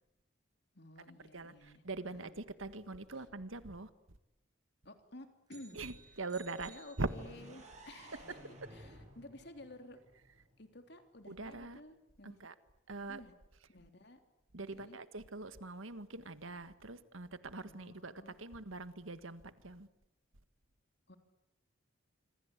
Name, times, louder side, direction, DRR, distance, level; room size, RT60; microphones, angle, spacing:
voice 1, 0.7-2.4 3.2-3.3 4.9-5.8 6.7-8.4 8.7-10.0 10.6-12.4 13.0-13.3 13.7-14.2 14.8-15.0 17.6-18.4 21.1-21.2, left 1 dB, 55° left, 3.4 m, -54 dB
voice 2, 1.3-3.9 5.7-6.7 7.0-7.1 11.3-11.8 12.2-12.5 12.9-13.2 14.5-19.9, right 3 dB, 80° right, 1.7 m, -43 dB
sound 1, 5.5-7.7, right 6 dB, 20° right, 4.8 m, -60 dB
sound 2, 7.1-10.9, right 1 dB, 35° right, 7.5 m, -56 dB
26.5 x 26.0 x 8.4 m
head